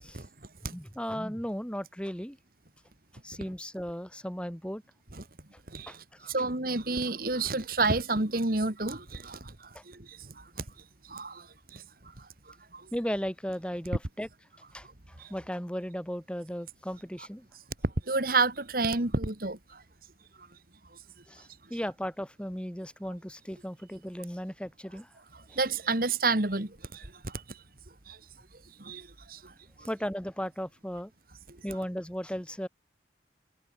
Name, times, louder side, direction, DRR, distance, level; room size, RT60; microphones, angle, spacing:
voice 1, 0.7-2.4 3.2-4.8 5.9-6.0 6.2-6.3 9.7-9.8 12.9-14.3 14.7-17.5 21.3-25.1 25.5-25.6 29.8-31.1 31.6-32.7, equal, 5° left, 4.3 m, -36 dB
voice 2, 5.7-10.4 11.0-11.8 12.2-12.3 12.7-12.9 15.2-15.3 17.8-19.8 25.5-27.6 28.1-28.2 28.8-29.5 29.8-29.9, right 3 dB, 55° right, 2.2 m, -30 dB
head